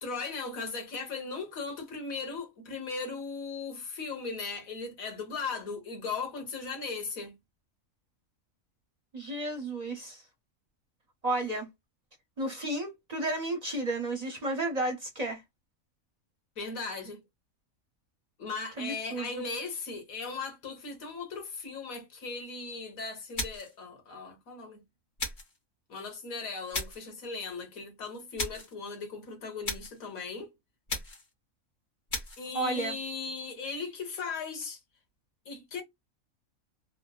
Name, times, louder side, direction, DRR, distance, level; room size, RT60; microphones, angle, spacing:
voice 1, 0.0-7.3 16.6-17.2 18.4-24.8 25.9-30.5 32.4-34.8 35.5-35.8, left 4 dB, 90° left, 1.4 m, -38 dB
voice 2, 9.1-10.2 11.2-11.7 12.4-15.4 18.8-19.3 32.5-32.9, right 2 dB, 45° right, 0.5 m, -32 dB
sound 1, 23.4-23.8 25.2-25.6 26.7-27.1 28.4-28.7 29.6-30.0 30.9-31.3 32.1-32.5, left 2 dB, 55° left, 1.2 m, -36 dB
3.1 x 2.1 x 2.3 m
omnidirectional pair, 1.4 m